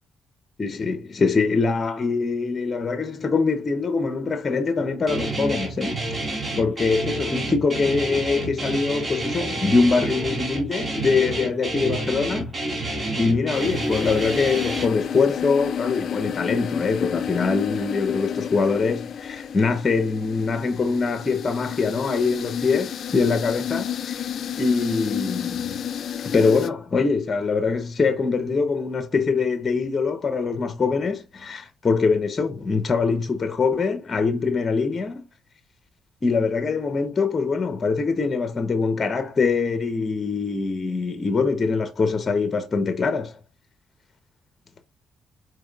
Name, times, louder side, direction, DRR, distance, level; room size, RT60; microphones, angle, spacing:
voice 1, 0.6-6.2 6.6-12.9 13.1-24.3 24.6-25.8 26.2-35.2 36.2-43.4, left 4 dB, 35° left, 0.9 m, -23 dB
Guitar, 5.1-14.8, right 2 dB, 30° right, 2.1 m, -29 dB
sound 1, 13.5-26.7, left 8 dB, 60° left, 0.4 m, -31 dB
4.9 x 4.5 x 2.4 m
cardioid pair, 90°, 0 cm